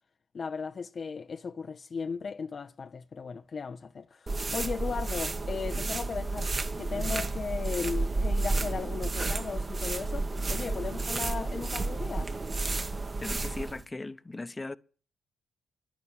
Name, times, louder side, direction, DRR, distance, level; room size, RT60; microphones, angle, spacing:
voice 1, 0.3-6.5 6.8-12.3, left 5 dB, 50° left, 0.6 m, -36 dB
sound 1, 4.3-13.8, right 3 dB, 40° right, 1.2 m, -31 dB
voice 2, 13.2-14.8, left 2 dB, 25° left, 0.9 m, -38 dB
11.0 x 11.0 x 8.0 m
hypercardioid pair, 40°, 0 cm